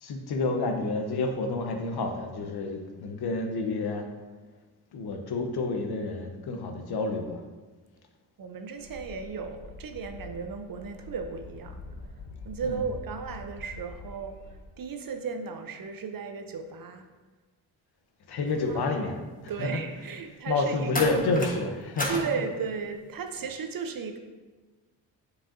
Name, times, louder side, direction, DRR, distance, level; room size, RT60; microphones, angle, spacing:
voice 1, 0.0-4.0 4.9-7.4 12.6-12.8 18.3-19.1 19.6-19.8 20.5-22.2, left 3 dB, 50° left, 4 dB, 1.0 m, -29 dB
voice 2, 8.4-11.8 12.4-14.4 14.8-17.1 18.7-18.8 19.5-20.9 22.1-24.2, right 5 dB, 45° right, 6 dB, 0.8 m, -35 dB
sound 1, 8.7-14.6, left 2 dB, 80° left, 0.8 m, -45 dB
sound 2, 18.5-18.8 20.9-21.6 22.0-22.3 23.3-23.5, left 1 dB, 15° left, 1.3 m, -32 dB
7.3 x 4.8 x 2.7 m, 1.3 s
hypercardioid pair, 40°, 48 cm